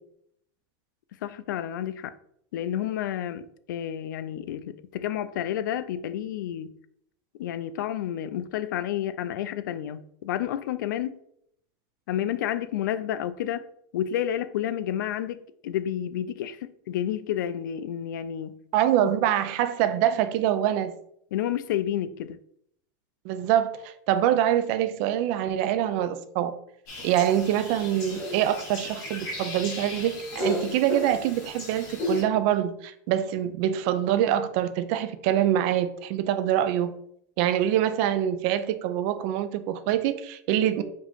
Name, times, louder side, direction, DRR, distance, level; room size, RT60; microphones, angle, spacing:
voice 1, 1.2-2.1 2.5-6.7 7.4-11.2 12.1-13.6 13.9-18.5 19.0-19.1 21.3-22.4, left 11 dB, 85° left, 0.4 m, -30 dB
voice 2, 18.7-20.9 23.2-26.5 27.0-36.9 37.4-40.8, right 11 dB, 40° right, 0.3 m, -25 dB
sound 1, 26.9-32.2, left 1 dB, 35° left, 1.7 m, -34 dB
4.9 x 2.8 x 3.5 m
supercardioid pair, 170°, 10 cm